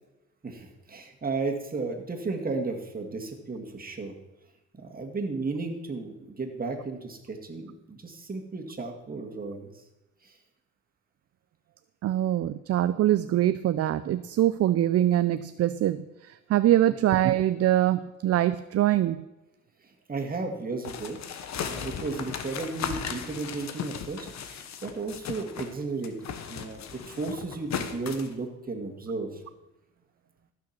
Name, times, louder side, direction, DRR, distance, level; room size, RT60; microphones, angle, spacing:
voice 1, 0.4-4.1 4.8-9.8 10.2-10.4 16.9-17.0 19.8-21.2 21.5-26.2 26.5-29.4, right 3 dB, 30° right, 2 dB, 2.1 m, -34 dB
voice 2, 12.0-19.2, right 12 dB, 55° right, 13 dB, 0.5 m, -24 dB
sound 1, 20.8-25.8 26.0-28.3, left 7 dB, 65° left, 1.2 m, -36 dB
14.5 x 6.4 x 5.9 m, 1.0 s
cardioid pair, 90°, 30 cm